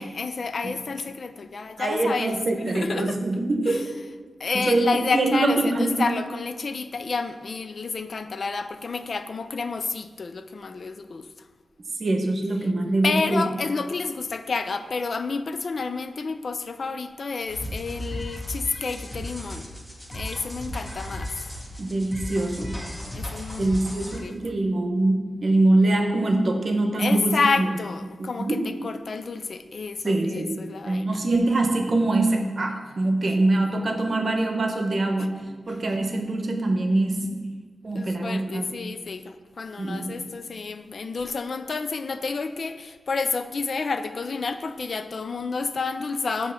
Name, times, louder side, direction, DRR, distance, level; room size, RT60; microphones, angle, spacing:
voice 1, 0.0-2.3 2.7-3.2 4.4-11.3 13.0-19.7 20.1-21.3 23.1-23.8 24.2-24.3 27.0-31.2 37.9-46.5, left 4 dB, 60° left, 10 dB, 0.3 m, -29 dB
voice 2, 1.8-3.9 4.5-6.0 12.0-13.4 21.8-22.7 23.6-27.7 28.2-28.7 30.0-30.5 30.8-35.3 35.7-37.3 37.8-38.8 39.8-40.1, right 2 dB, 55° right, 4 dB, 0.8 m, -24 dB
sound 1, 17.5-24.2, left 1 dB, 10° left, 1.1 m, -35 dB
7.5 x 3.0 x 5.6 m, 1.5 s
wide cardioid pair, 100°, 0 cm